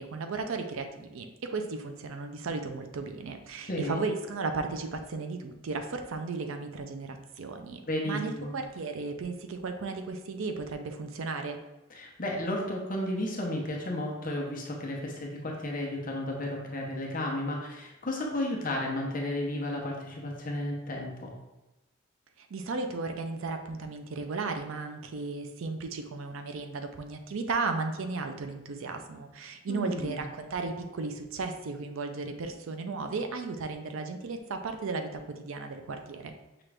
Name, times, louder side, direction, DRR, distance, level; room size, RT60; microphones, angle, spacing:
voice 1, 0.0-11.6 22.4-36.3, right 3 dB, 75° right, 6 dB, 0.4 m, -35 dB
voice 2, 3.6-4.0 7.9-8.5 11.9-21.3 29.7-30.2, left 1 dB, 40° left, -1 dB, 0.8 m, -33 dB
5.8 x 2.5 x 3.3 m, 1.0 s
head